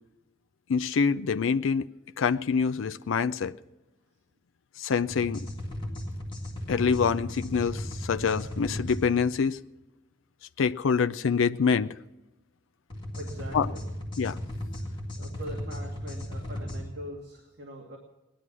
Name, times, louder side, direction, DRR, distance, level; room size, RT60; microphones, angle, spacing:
voice 1, 0.7-1.9 2.2-3.5 4.8-5.4 6.7-9.6 10.6-11.9 13.5-13.7 14.2-14.4, left 6 dB, 85° left, 0.5 m, -25 dB
sound 1, 5.1-9.0 12.9-16.8, left 1 dB, 25° left, 3.4 m, -36 dB
voice 2, 13.1-13.9 14.8-18.0, right 1 dB, 60° right, 2.4 m, -42 dB
18.5 x 11.5 x 6.1 m
head